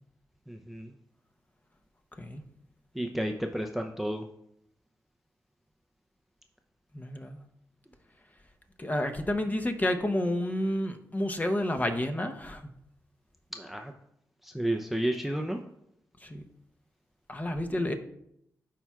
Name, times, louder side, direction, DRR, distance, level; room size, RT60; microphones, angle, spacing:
voice 1, 0.5-0.9 2.9-4.2 13.5-13.9 14.4-15.6, right 1 dB, 5° right, 3 dB, 0.6 m, -32 dB
voice 2, 6.9-7.4 8.8-12.7 16.2-16.4 17.3-17.9, left 1 dB, 25° left, 6 dB, 0.9 m, -30 dB
11.5 x 4.5 x 2.4 m, 0.77 s
cardioid pair, 55°, 7 cm